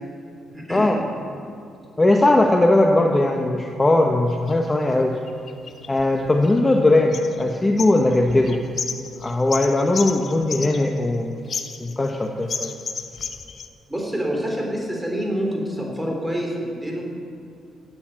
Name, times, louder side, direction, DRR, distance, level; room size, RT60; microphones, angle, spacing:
voice 1, 0.5-1.0 13.9-17.0, equal, 5° right, 0 dB, 3.8 m, -27 dB
voice 2, 2.0-5.2 5.9-8.6 9.2-11.4 11.8-12.7, left 2 dB, 20° left, 2 dB, 1.1 m, -19 dB
sound 1, 4.3-4.6 5.3-6.8 7.1-7.5 7.8-11.1 11.5-12.2 12.5-13.7, left 5 dB, 50° left, 0.9 m, -32 dB
13.0 x 8.4 x 9.1 m, 2.7 s
cardioid pair, 90°, 0 cm